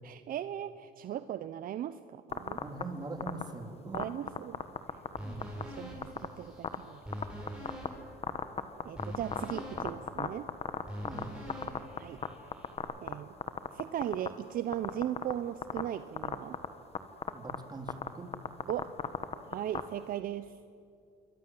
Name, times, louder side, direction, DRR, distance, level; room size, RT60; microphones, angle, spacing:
voice 1, 0.0-2.6 3.8-4.6 5.8-7.0 8.8-10.5 12.0-12.2 13.0-13.3 13.7-16.6 18.7-18.9 19.5-20.5, right 11 dB, 60° right, 12 dB, 0.8 m, -37 dB
sound 1, 2.3-2.8 3.2-3.4 3.9-5.2 5.4-5.6 6.0-6.3 6.6-6.8 7.1-7.9 8.2-11.2 11.5-12.3 12.5-13.1 13.4-14.3 14.7-15.3 15.6-15.8 16.2-16.7 17.0-17.1 17.2-17.6 17.9-18.1 18.3-19.8, left 6 dB, 35° left, 1.7 m, -32 dB
voice 2, 2.5-4.1 5.2-5.5 11.0-11.3 17.3-18.3, right 2 dB, 25° right, 4 dB, 3.7 m, -42 dB
sound 2, 5.2-12.8, equal, 5° right, 7.8 m, -45 dB
27.5 x 23.0 x 7.8 m, 2.5 s
cardioid pair, 110°, 17 cm